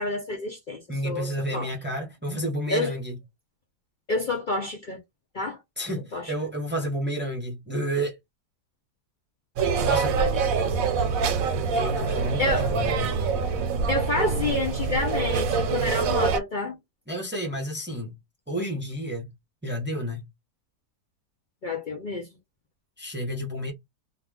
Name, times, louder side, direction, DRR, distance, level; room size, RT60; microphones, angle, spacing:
voice 1, 0.0-1.7 2.7-2.9 4.1-5.0 5.3-5.6 6.1-6.3 9.8-9.9 10.1-10.4 12.4-12.7 13.9-16.8 21.6-22.3, left 2 dB, 85° left, 0.4 m, -29 dB
voice 2, 0.9-3.2 5.8-8.2 9.8-10.2 11.7-13.3 17.1-18.1 18.5-19.3 19.6-20.3 23.0-23.7, equal, 15° right, 0.4 m, -30 dB
sound 1, 9.6-16.4, right 5 dB, 65° right, 0.9 m, -25 dB
2.8 x 2.4 x 3.5 m
omnidirectional pair, 1.8 m